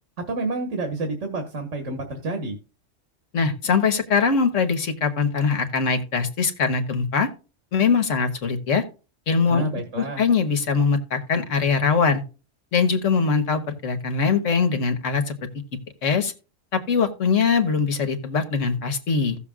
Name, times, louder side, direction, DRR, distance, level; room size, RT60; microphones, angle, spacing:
voice 1, 0.3-2.6 9.5-10.2, right 2 dB, 75° right, 3 dB, 1.9 m, -29 dB
voice 2, 3.3-7.3 7.7-8.8 9.3-9.6 10.0-12.2 12.7-15.3 16.0-16.3 16.7-19.4, left 5 dB, 75° left, 8 dB, 1.6 m, -22 dB
16.5 x 6.8 x 2.4 m, 0.33 s
omnidirectional pair, 1.3 m